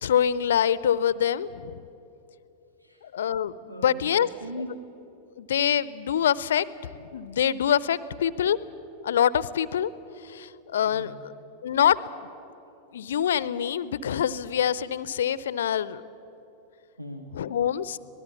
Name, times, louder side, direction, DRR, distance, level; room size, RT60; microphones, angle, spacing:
voice 1, 0.0-1.8 3.1-4.3 5.4-6.7 6.9-8.6 9.0-9.9 10.2-11.1 11.6-12.3 12.9-16.0 17.3-18.0, left 9 dB, 65° left, 19 dB, 0.6 m, -25 dB
voice 2, 2.8-3.1 3.7-4.8 10.8-11.2 17.0-17.4, right 1 dB, 90° right, 5 dB, 1.2 m, -40 dB
25.0 x 19.0 x 7.1 m, 2.9 s
figure-of-eight pair, 90°, 0 cm